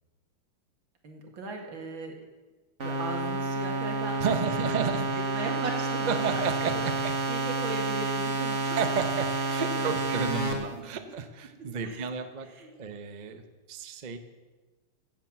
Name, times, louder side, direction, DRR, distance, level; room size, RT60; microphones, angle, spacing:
voice 1, 1.0-2.2 2.8-4.3 4.6-4.9 5.3-6.9 7.3-8.8 9.5-9.9 10.3-10.4 10.7-10.8 11.8-12.1 12.6-12.7, right 3 dB, 65° right, 3 dB, 2.7 m, -38 dB
sound 1, 2.8-10.5, right 3 dB, 35° right, 2.0 m, -30 dB
voice 2, 4.2-5.1 6.1-7.2 8.6-12.5 12.8-13.4 13.7-14.2, right 6 dB, 90° right, 8 dB, 0.4 m, -32 dB
15.0 x 7.5 x 7.4 m, 1.3 s
omnidirectional pair, 2.4 m